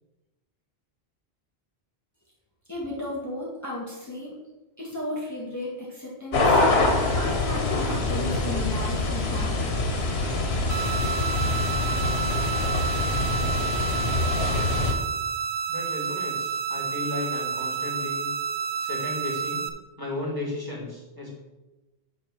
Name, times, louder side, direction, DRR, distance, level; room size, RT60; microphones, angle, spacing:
voice 1, 2.7-4.3 4.8-6.7 7.1-9.6, left 1 dB, 15° left, -5 dB, 2.0 m, -34 dB
sound 1, 6.3-14.9, left 2 dB, 90° left, 1.4 m, -25 dB
sound 2, 10.7-19.7, right 6 dB, 70° right, 0.9 m, -30 dB
voice 2, 15.7-18.3 18.8-19.7 20.0-21.3, left 2 dB, 20° right, -5 dB, 2.7 m, -34 dB
8.5 x 4.2 x 6.5 m, 1.1 s
omnidirectional pair, 1.0 m